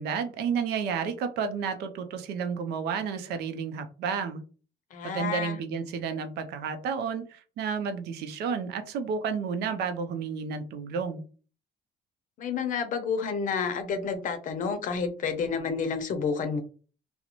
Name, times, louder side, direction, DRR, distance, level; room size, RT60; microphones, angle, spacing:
voice 1, 0.0-4.4 5.0-11.2, right 6 dB, 75° right, 7 dB, 0.5 m, -31 dB
voice 2, 4.9-5.6 12.4-16.6, left 5 dB, 50° left, 8 dB, 0.6 m, -30 dB
2.4 x 2.0 x 2.9 m, 0.38 s
cardioid pair, 110°, 17 cm